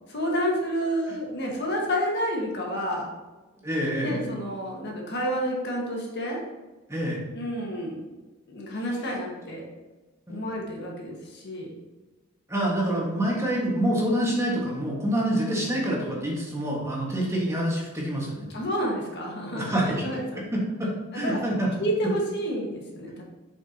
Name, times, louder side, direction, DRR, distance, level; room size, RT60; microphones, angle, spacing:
voice 1, 0.1-3.1 4.0-6.4 7.3-8.1 8.5-9.6 10.3-11.8 18.5-20.4 21.1-21.4 21.8-23.2, equal, 55° left, -1 dB, 1.6 m, -29 dB
voice 2, 3.6-4.3 6.9-7.2 10.3-10.4 12.5-18.5 19.5-20.0 20.4-21.7, right 1 dB, 15° right, -4 dB, 1.7 m, -27 dB
7.3 x 6.0 x 2.9 m, 1.2 s
head